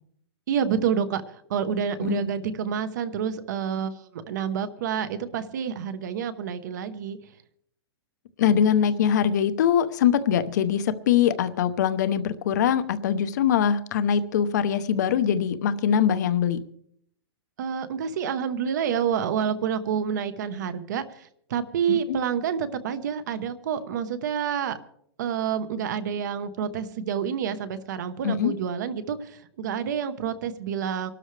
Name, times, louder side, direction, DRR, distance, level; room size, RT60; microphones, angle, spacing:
voice 1, 0.5-7.2 17.6-24.8 25.2-31.1, right 8 dB, 45° right, 12 dB, 1.1 m, -28 dB
voice 2, 8.4-16.6 21.9-22.2 28.2-28.5, left 8 dB, 40° left, 11 dB, 0.9 m, -23 dB
24.5 x 12.5 x 3.4 m, 0.67 s
hypercardioid pair, 180°, 14 cm